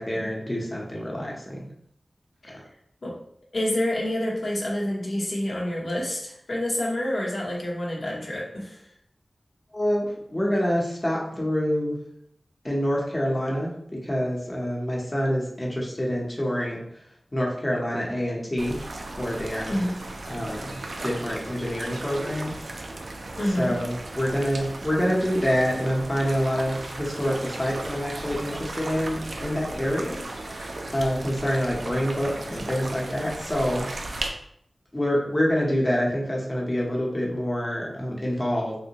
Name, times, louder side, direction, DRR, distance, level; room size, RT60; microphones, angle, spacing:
voice 1, 0.0-1.7 9.7-12.0 12.6-16.8 17.3-18.8 19.2-19.7 20.3-20.7 21.0-22.6 23.6-30.7 30.9-33.9 34.9-38.8, equal, 25° left, -3 dB, 0.8 m, -26 dB
voice 2, 3.5-8.8 19.7-20.0 23.4-23.7, left 1 dB, 65° left, -3 dB, 0.7 m, -27 dB
sound 1, 18.6-34.3, right 2 dB, 75° right, 0.4 m, -36 dB
3.4 x 2.6 x 2.9 m, 0.71 s
wide cardioid pair, 75°, 0 cm